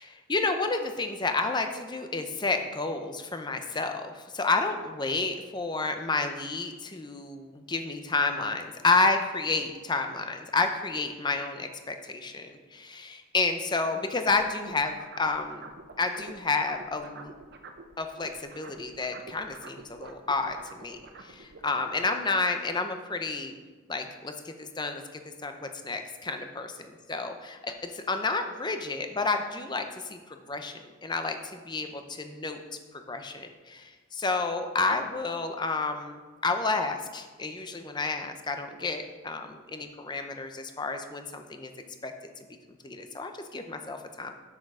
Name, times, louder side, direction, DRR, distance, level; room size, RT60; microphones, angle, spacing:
voice 1, 0.3-15.7 16.0-17.3 18.0-23.5 23.9-32.6 33.1-41.7 42.0-42.1 42.8-44.3, left 3 dB, 20° left, 6 dB, 0.6 m, -30 dB
sound 1, 14.3-17.9 18.2-22.0, right 3 dB, 55° right, 0.8 m, -47 dB
7.4 x 6.6 x 4.9 m, 1.3 s
head